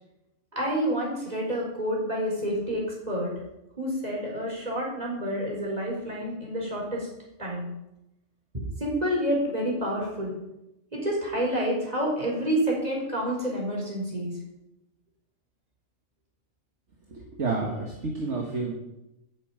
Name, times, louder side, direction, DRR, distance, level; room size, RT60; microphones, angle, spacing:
voice 1, 0.5-3.3 3.8-7.1 7.4-7.7 8.8-10.3 10.9-14.3, equal, 30° right, -2 dB, 5.0 m, -28 dB
voice 2, 17.1-18.7, right 3 dB, 60° right, 0 dB, 2.0 m, -30 dB
10.0 x 8.5 x 8.8 m, 0.91 s
omnidirectional pair, 1.4 m